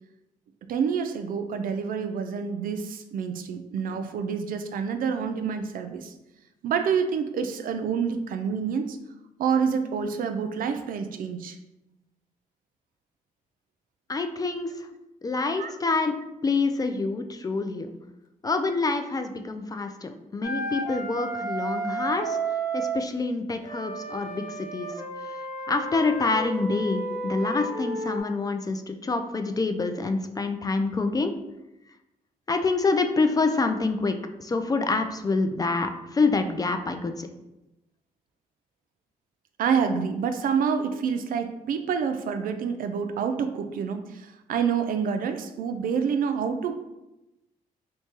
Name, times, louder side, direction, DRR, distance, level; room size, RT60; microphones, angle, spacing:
voice 1, 0.7-6.1 6.6-9.0 9.4-11.6 14.7-14.9 15.6-15.7 39.6-46.7, right 6 dB, 70° right, 7 dB, 0.4 m, -27 dB
voice 2, 14.1-14.7 15.2-16.1 16.4-17.9 18.4-22.4 22.7-24.9 25.7-31.3 32.5-37.3, left 3 dB, 25° left, 7 dB, 0.3 m, -26 dB
Wind instrument woodwind instrument, 20.4-23.0 23.6-28.2, right 3 dB, 90° left, 0.7 m, -32 dB
4.5 x 2.2 x 2.9 m, 0.95 s
cardioid pair, 85°, 15 cm